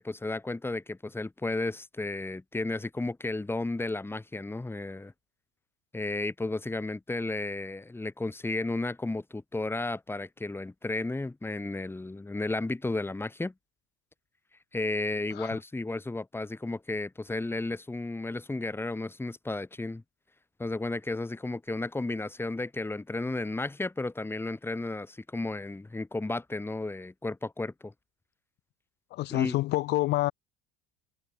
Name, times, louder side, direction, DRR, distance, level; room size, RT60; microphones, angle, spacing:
voice 1, 0.0-5.1 5.9-13.5 14.7-20.0 20.6-27.9 29.3-29.5, left 2 dB, 10° left, 3.5 m, -33 dB
voice 2, 29.1-30.3, left 17 dB, 60° left, 3.2 m, -28 dB
hypercardioid pair, 70°, 20 cm